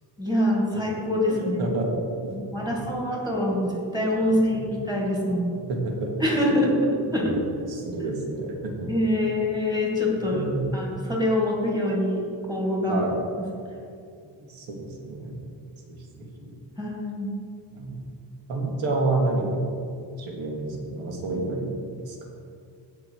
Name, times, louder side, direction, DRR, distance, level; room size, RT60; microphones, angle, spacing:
voice 1, 0.2-1.7 2.3-5.5 6.2-7.3 8.9-10.4 10.7-12.2 12.5-13.0 16.8-17.4, left 1 dB, 10° right, -2 dB, 2.1 m, -25 dB
voice 2, 1.3-2.8 4.3-4.7 5.5-6.7 7.1-7.4 7.7-8.9 9.2-9.3 10.2-10.8 12.9-13.2 14.5-15.4 15.9-16.5 17.7-18.0 18.5-19.7 20.2-22.2, right 2 dB, 80° right, 0 dB, 2.3 m, -30 dB
17.0 x 5.9 x 4.7 m, 2.4 s
cardioid pair, 175°, 46 cm